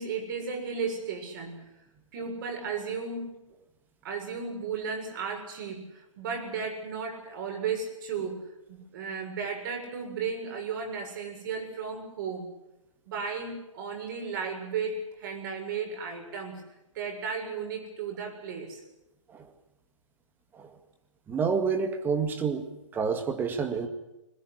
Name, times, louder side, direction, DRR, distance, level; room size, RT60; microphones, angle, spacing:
voice 1, 0.0-1.7 2.1-3.4 4.0-12.5 13.1-16.6 16.9-18.8, right 5 dB, 40° right, 2 dB, 7.3 m, -34 dB
voice 2, 21.3-22.7 22.9-23.9, right 5 dB, 10° right, 7 dB, 2.1 m, -28 dB
21.5 x 20.5 x 10.0 m, 0.93 s
figure-of-eight pair, 130°, 17 cm